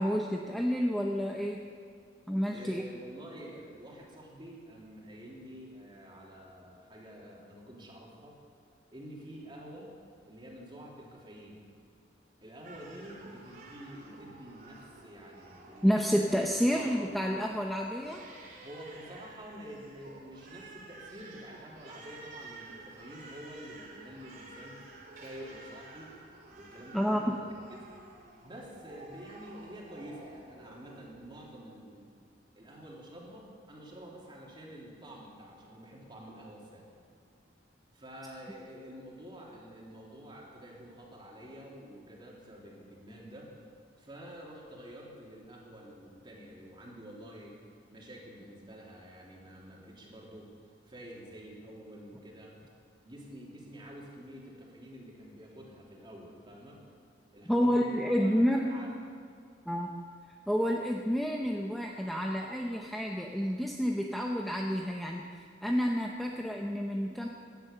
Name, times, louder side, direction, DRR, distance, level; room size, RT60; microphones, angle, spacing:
voice 1, 0.0-1.6 2.3-2.8 15.8-18.2 26.9-27.2 57.5-58.7 59.7-59.9 60.5-67.3, equal, ahead, 0 dB, 0.8 m, -29 dB
voice 2, 2.5-8.3 8.9-9.9 10.2-11.6 12.4-16.3 16.7-17.0 18.6-24.8 25.1-26.1 26.5-27.9 28.4-32.1 32.5-36.9 37.9-43.5 44.0-47.6 47.9-50.5 50.8-52.6 53.0-56.8 57.3-58.9, equal, 25° right, -3 dB, 3.2 m, -48 dB
Crying sobbing, 12.6-31.4, right 2 dB, 50° right, 2.9 m, -52 dB
16.5 x 11.5 x 6.8 m, 2.2 s
head